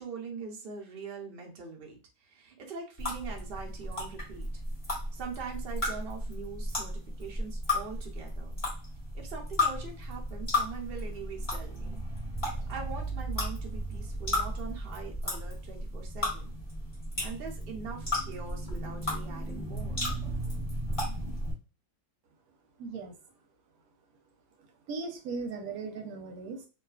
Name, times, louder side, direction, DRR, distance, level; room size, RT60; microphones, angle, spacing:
voice 1, 0.0-4.5 5.1-8.6 9.1-12.0 12.7-16.6 17.2-20.1, right 5 dB, 50° right, 0 dB, 0.8 m, -42 dB
sound 1, 3.0-21.5, left 1 dB, 25° left, 1.2 m, -34 dB
voice 2, 22.8-23.1 24.6-26.7, right 4 dB, 85° right, 4 dB, 1.1 m, -38 dB
2.6 x 2.3 x 2.3 m, 0.32 s
omnidirectional pair, 1.5 m